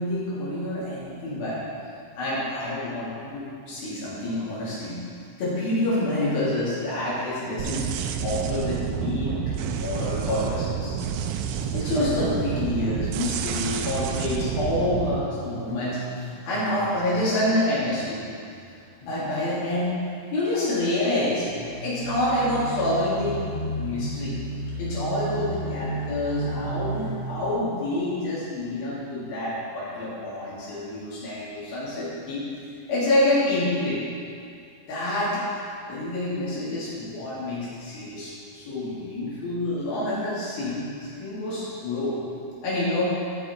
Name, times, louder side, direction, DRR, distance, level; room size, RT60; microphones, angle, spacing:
voice 1, 0.0-1.6 2.2-5.0 5.4-7.9 8.2-9.3 9.7-11.0 11.7-18.2 19.0-19.9 20.3-21.5 21.8-23.4 23.8-24.4 24.8-32.5 32.9-34.0 34.9-35.4 35.9-42.2 42.6-43.2, left 1 dB, 85° left, -9 dB, 4.5 m, -27 dB
sound 1, 7.6-15.2, right 7 dB, 85° right, 2.3 m, -29 dB
sound 2, 14.4-18.8 19.2-19.7 21.1-27.4, right 1 dB, 55° left, 0.6 m, -35 dB
13.0 x 5.8 x 5.1 m, 2.4 s
omnidirectional pair, 4.1 m